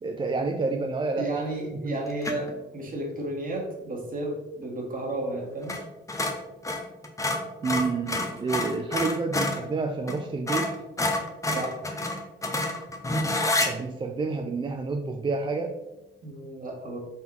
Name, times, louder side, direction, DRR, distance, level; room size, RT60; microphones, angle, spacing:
voice 1, 0.0-1.3 1.8-2.0 7.6-10.7 11.0-11.1 13.7-15.8, right 4 dB, 25° right, 3 dB, 0.4 m, -29 dB
voice 2, 1.2-5.7 11.5-11.7 16.2-17.0, right 2 dB, 45° right, -1 dB, 1.3 m, -32 dB
sound 1, 2.2-2.5 5.6-5.8 6.1-9.6 10.1-10.2 10.5-13.7, left 2 dB, 15° left, 0.6 m, -28 dB
3.9 x 3.9 x 2.9 m, 1.0 s
cardioid pair, 90°, 20 cm